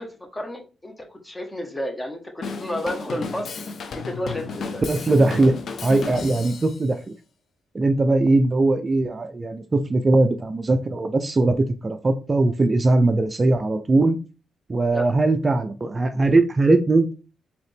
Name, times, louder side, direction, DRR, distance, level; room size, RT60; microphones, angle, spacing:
voice 1, 0.0-3.5 3.9-4.8 14.9-15.1, left 1 dB, 20° left, 4 dB, 1.2 m, -31 dB
Drum kit / Drum, 2.4-6.8, left 4 dB, 60° left, 0.6 m, -33 dB
voice 2, 4.9-5.5 5.8-7.0 7.7-14.2 14.7-17.1, right 2 dB, 35° right, 9 dB, 0.4 m, -20 dB
4.0 x 2.9 x 3.4 m, 0.34 s
supercardioid pair, 50°, 0 cm